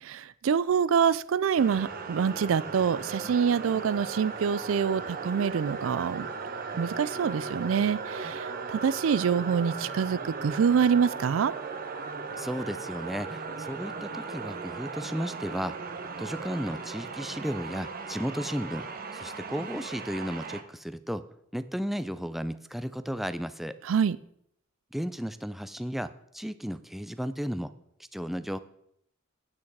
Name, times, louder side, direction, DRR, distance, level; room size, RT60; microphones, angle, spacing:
voice 1, 0.0-6.3 6.8-11.5 23.8-24.2, right 7 dB, 90° right, 18 dB, 0.4 m, -26 dB
sound 1, 1.6-20.6, right 4 dB, 50° right, 0.9 m, -37 dB
voice 2, 12.4-15.7 16.2-18.9 19.1-21.2 21.5-23.7 24.9-27.7 28.1-28.6, equal, ahead, 12 dB, 0.4 m, -34 dB
8.8 x 8.5 x 4.7 m, 0.72 s
head